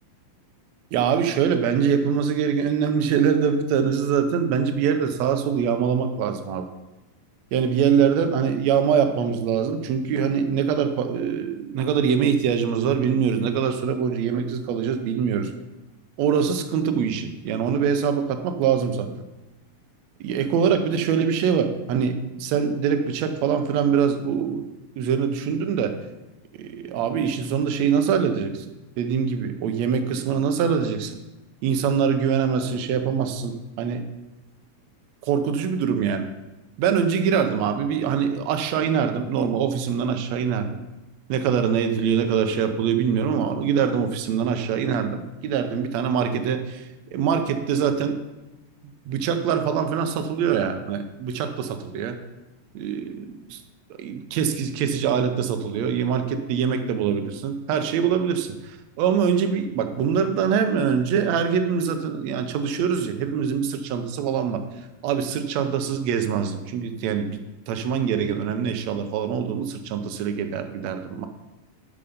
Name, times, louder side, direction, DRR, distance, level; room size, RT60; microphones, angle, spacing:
voice 1, 0.9-6.7 7.5-15.5 16.2-19.1 20.2-24.7 25.0-26.0 26.6-28.6 29.0-31.2 31.6-34.0 35.2-36.3 36.8-40.8 41.3-46.8 47.1-48.2 49.0-52.2 52.7-53.6 54.0-64.6 65.0-71.3, right 7 dB, 75° right, 7 dB, 1.6 m, -24 dB
11.0 x 6.9 x 5.1 m, 1.0 s
omnidirectional pair, 4.0 m